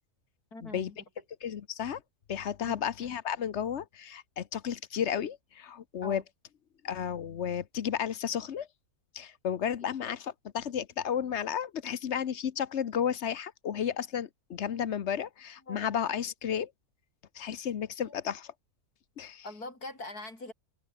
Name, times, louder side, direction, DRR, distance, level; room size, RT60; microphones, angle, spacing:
voice 1, 0.5-1.0 2.6-2.8 6.0-6.2 15.7-16.0 18.0-18.1 19.4-20.5, left 2 dB, 80° left, 7.3 m, -42 dB
voice 2, 1.4-2.0 2.3-6.2 6.8-8.7 9.1-16.7 17.3-18.5 19.2-19.4, left 8 dB, 55° left, 1.1 m, -33 dB
omnidirectional pair, 1.6 m